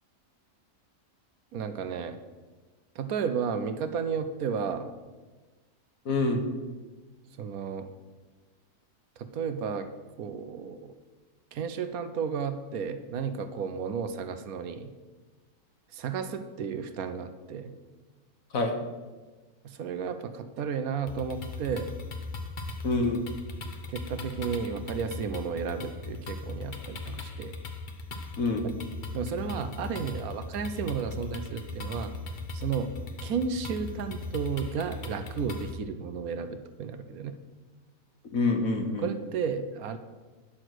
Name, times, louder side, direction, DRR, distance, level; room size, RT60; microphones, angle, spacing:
voice 1, 1.5-2.2 3.0-4.8 7.4-7.9 9.2-9.9 10.2-10.9 11.5-14.9 15.9-17.7 19.8-21.9 23.9-27.5 28.6-28.7 29.1-32.1 32.5-32.9 33.2-37.3 39.0-40.0, right 6 dB, 70° right, 9 dB, 1.1 m, -33 dB
voice 2, 6.0-6.5 18.5-18.8 22.8-23.2 28.4-28.7 38.3-39.1, left 3 dB, 60° left, 4 dB, 1.7 m, -26 dB
sound 1, 21.1-35.7, left 2 dB, 40° left, 0.8 m, -39 dB
9.9 x 6.4 x 6.1 m, 1.3 s
omnidirectional pair, 1.6 m